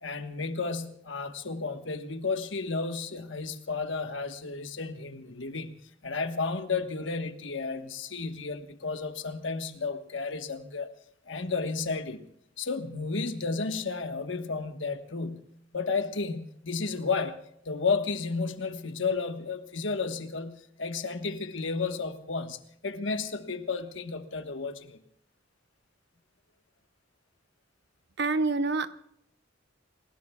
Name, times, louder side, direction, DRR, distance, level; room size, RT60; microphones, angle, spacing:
voice 1, 0.0-5.7 6.0-10.9 11.3-12.2 12.6-15.5 15.7-17.4 17.6-25.0, left 4 dB, 65° left, 1.3 m, -32 dB
voice 2, 28.2-28.9, right 3 dB, 60° right, 0.8 m, -26 dB
29.5 x 17.0 x 2.3 m
head